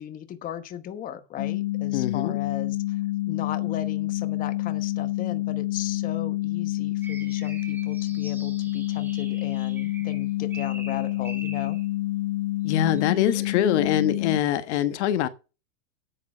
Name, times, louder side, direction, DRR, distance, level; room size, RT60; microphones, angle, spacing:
voice 1, 0.0-3.0 3.3-11.8, left 10 dB, 20° left, 1.1 m, -37 dB
sound 1, 1.4-14.4, left 17 dB, 40° left, 2.5 m, -28 dB
voice 2, 1.9-2.4 12.6-15.3, left 10 dB, 55° left, 1.3 m, -24 dB
sound 2, 7.0-11.9 12.7-13.8, right 1 dB, 5° right, 2.8 m, -45 dB
9.4 x 8.8 x 5.5 m
supercardioid pair, 145°, 40 cm